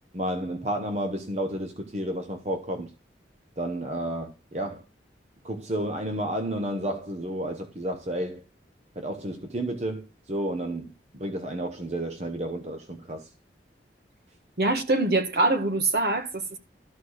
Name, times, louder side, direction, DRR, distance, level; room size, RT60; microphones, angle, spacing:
voice 1, 0.1-2.9 3.6-4.8 5.4-8.4 9.0-13.3, right 1 dB, 40° right, 0.9 m, -31 dB
voice 2, 14.6-16.6, right 2 dB, 60° right, 1.5 m, -24 dB
13.0 x 4.4 x 6.4 m
head